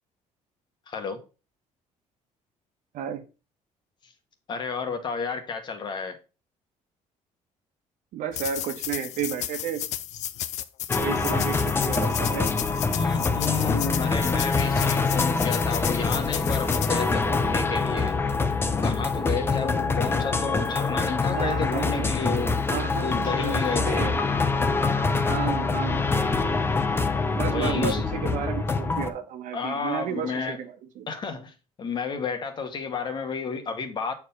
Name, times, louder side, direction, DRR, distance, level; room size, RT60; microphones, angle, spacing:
voice 1, 0.9-1.2 4.5-6.2 12.9-18.2 18.6-22.5 23.0-24.1 27.4-28.0 29.5-30.6 31.1-34.1, left 5 dB, 35° left, 1.5 m, -31 dB
voice 2, 2.9-3.2 8.1-9.8 11.0-11.6 11.9-12.6 21.3-22.4 22.7-24.2 25.3-26.6 27.3-31.1, right 8 dB, 80° right, 1.3 m, -32 dB
sound 1, 8.3-17.1, left 12 dB, 65° left, 0.6 m, -33 dB
sound 2, 10.9-29.1, left 4 dB, 20° left, 0.7 m, -25 dB
8.4 x 4.6 x 5.4 m
cardioid pair, 165°, 13 cm